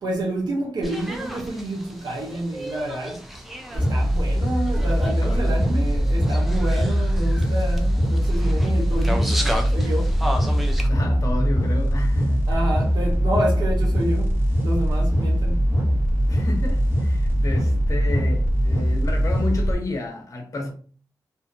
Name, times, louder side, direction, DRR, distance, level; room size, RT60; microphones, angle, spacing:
voice 1, 0.0-3.2 3.7-9.2 9.7-10.1 12.5-14.3 14.6-15.6, right 1 dB, 85° right, 0.7 m, -28 dB
sound 1, 0.8-10.9, equal, ahead, 0.4 m, -34 dB
sound 2, 3.7-19.7, equal, 30° right, 0.8 m, -21 dB
voice 2, 5.2-5.6 10.9-12.7 16.3-20.7, left 2 dB, 50° left, 0.8 m, -31 dB
2.6 x 2.1 x 2.5 m
wide cardioid pair, 80°, 7 cm